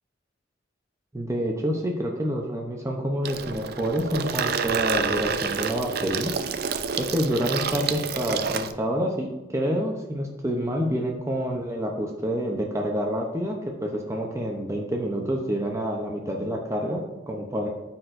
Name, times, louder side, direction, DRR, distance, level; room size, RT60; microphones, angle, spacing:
voice 1, 1.1-6.3 7.0-17.7, equal, 15° right, 0 dB, 0.7 m, -28 dB
Water tap faucet / Sink (filling or washing), 3.2-8.7, right 6 dB, 60° right, 0.5 m, -28 dB
13.0 x 4.4 x 2.6 m, 1.2 s
head